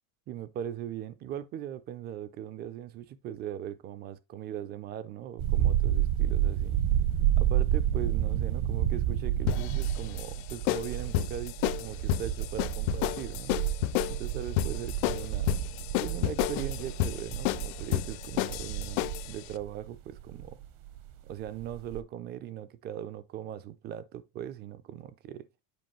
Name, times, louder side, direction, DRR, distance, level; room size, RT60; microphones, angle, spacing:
voice 1, 0.3-6.8 7.4-13.6 14.0-15.5 16.0-20.6 21.3-25.5, right 10 dB, 25° right, 0.3 m, -39 dB
sound 1, 5.4-21.1 21.5-22.0, right 11 dB, 55° right, 0.9 m, -30 dB
sound 2, 9.5-19.4, left 16 dB, 60° left, 0.5 m, -31 dB
7.8 x 5.1 x 3.0 m
cardioid pair, 160°, 40 cm